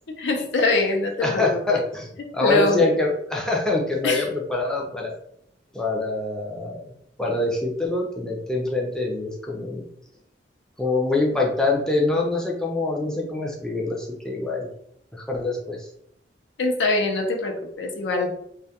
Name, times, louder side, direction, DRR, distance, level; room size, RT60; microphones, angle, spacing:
voice 1, 0.1-1.8 2.4-2.8 4.0-4.3 16.6-18.3, left 3 dB, 90° left, 2 dB, 0.5 m, -23 dB
voice 2, 1.2-2.1 2.3-5.1 5.7-6.9 7.2-9.9 10.8-14.7 15.1-15.9, left 2 dB, 5° left, -2 dB, 0.4 m, -25 dB
2.2 x 2.1 x 2.8 m, 0.71 s
head